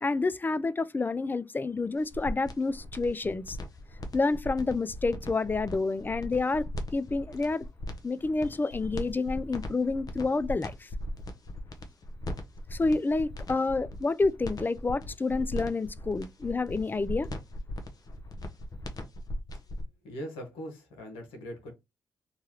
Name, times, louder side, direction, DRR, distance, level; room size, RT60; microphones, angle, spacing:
voice 1, 0.0-3.6 4.1-6.7 6.9-7.7 8.0-10.9 12.7-17.3, left 3 dB, 20° left, 0.3 m, -29 dB
sound 1, 2.0-19.8, left 1 dB, 45° left, 0.8 m, -38 dB
voice 2, 20.0-21.7, equal, 85° left, 0.9 m, -40 dB
3.0 x 2.3 x 2.9 m
hypercardioid pair, 45°, 9 cm